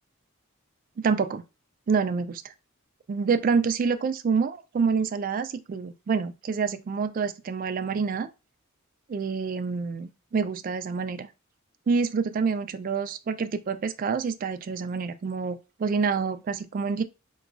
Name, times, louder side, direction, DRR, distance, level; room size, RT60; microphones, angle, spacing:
voice 1, 1.0-1.4 1.9-2.5 3.1-8.3 9.1-11.3 11.9-17.0, right 5 dB, 40° right, 0.3 m, -27 dB
4.8 x 2.3 x 2.4 m
head